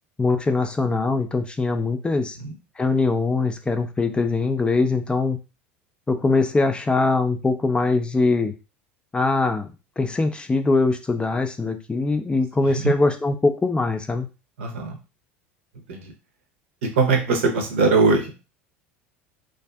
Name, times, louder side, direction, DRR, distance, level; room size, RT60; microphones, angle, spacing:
voice 1, 0.2-2.4 2.8-5.4 6.1-8.5 9.1-9.7 10.0-14.3, left 3 dB, 15° left, 7 dB, 0.3 m, -22 dB
voice 2, 14.6-15.0 15.9-16.1 16.8-18.4, right 4 dB, 70° right, 4 dB, 0.6 m, -21 dB
2.5 x 2.5 x 2.2 m, 0.30 s
figure-of-eight pair, 75°, 7 cm